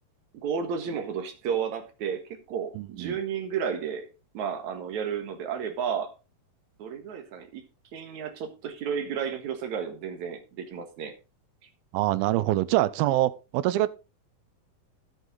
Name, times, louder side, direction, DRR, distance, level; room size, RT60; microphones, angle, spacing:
voice 1, 0.3-4.1 4.3-6.1 6.8-7.6 7.9-11.1, right 7 dB, 60° right, 2.5 m, -32 dB
voice 2, 2.8-3.2 11.9-13.9, right 15 dB, 90° right, 2.6 m, -25 dB
13.0 x 8.1 x 3.8 m
omnidirectional pair, 4.2 m